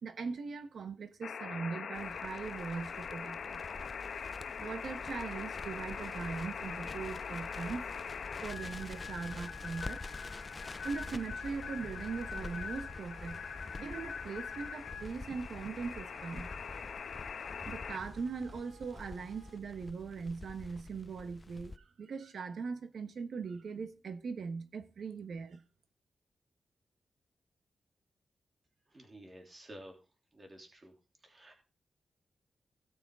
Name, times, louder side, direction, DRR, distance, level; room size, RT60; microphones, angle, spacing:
voice 1, 0.0-3.6 4.6-8.1 8.4-10.2 10.8-13.4 13.8-16.5 17.6-25.6, right 5 dB, 65° right, 1.2 m, -40 dB
sound 1, 1.2-18.0, left 6 dB, 70° left, 1.0 m, -43 dB
Crackle, 1.9-21.8, left 2 dB, 25° left, 0.5 m, -48 dB
sound 2, 8.5-19.9, right 5 dB, 40° right, 3.1 m, -61 dB
voice 2, 28.9-30.0 30.3-30.9 31.2-31.6, right 1 dB, 25° right, 3.0 m, -52 dB
17.0 x 6.8 x 3.7 m
wide cardioid pair, 155°, 0 cm